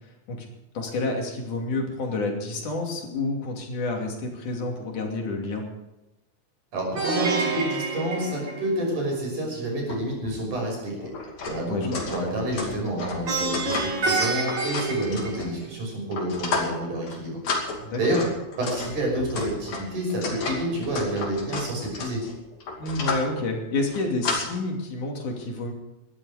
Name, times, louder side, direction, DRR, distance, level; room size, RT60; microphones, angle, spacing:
voice 1, 0.7-5.6 11.7-12.0 17.8-18.2 22.8-25.7, left 2 dB, 80° left, 1 dB, 4.2 m, -29 dB
voice 2, 6.7-11.1 11.5-17.4 18.0-18.2 18.6-22.2, right 1 dB, 85° right, -1 dB, 7.5 m, -29 dB
Plucked string instrument, 7.0-9.1 13.3-15.9, right 3 dB, 40° right, 2.9 m, -28 dB
sound 1, 9.9-10.0 10.2-10.4 11.0-15.7 16.1-16.8 17.1-17.2 17.4-23.3 23.8-24.4, left 3 dB, 60° left, 3.9 m, -32 dB
19.0 x 12.5 x 5.0 m, 0.96 s
omnidirectional pair, 3.5 m